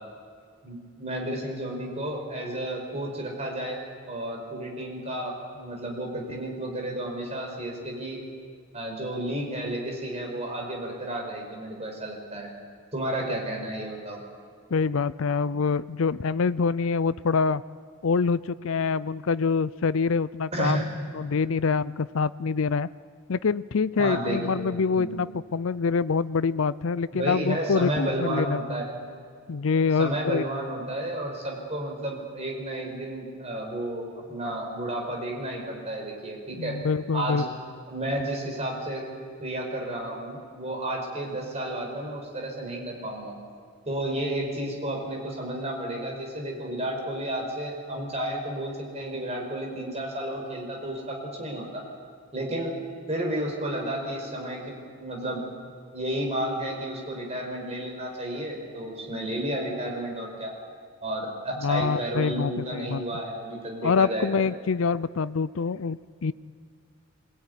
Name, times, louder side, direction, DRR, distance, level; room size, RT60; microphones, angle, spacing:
voice 1, 0.6-3.8 4.1-8.2 8.7-12.5 12.9-14.2 20.5-20.8 24.0-25.2 27.1-28.9 30.0-36.8 37.1-37.5 37.9-39.1 39.4-43.3 43.9-51.8 52.3-52.8 53.1-55.4 55.9-60.5 61.0-64.3, right 1 dB, 30° right, 0 dB, 5.1 m, -32 dB
voice 2, 14.7-17.6 18.0-20.8 21.1-22.9 23.3-28.6 29.5-30.4 36.6-37.4 61.6-63.0 63.8-66.3, left 5 dB, 65° left, 16 dB, 0.5 m, -25 dB
23.0 x 19.0 x 9.6 m, 2.2 s
head